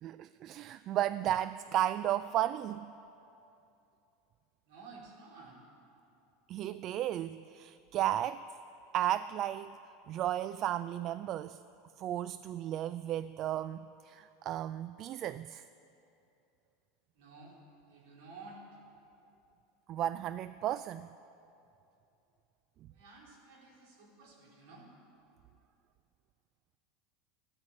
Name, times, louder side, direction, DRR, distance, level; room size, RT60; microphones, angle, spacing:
voice 1, 0.0-2.9 6.5-8.5 8.9-9.8 10.1-11.6 12.0-15.6 19.9-21.1, right 12 dB, 45° right, 15 dB, 0.3 m, -34 dB
voice 2, 4.7-5.6 17.2-17.6 17.9-18.6 22.9-24.9, right 3 dB, 70° right, -3 dB, 4.3 m, -53 dB
14.0 x 10.0 x 8.9 m, 2.8 s
hypercardioid pair, 105°, 0 cm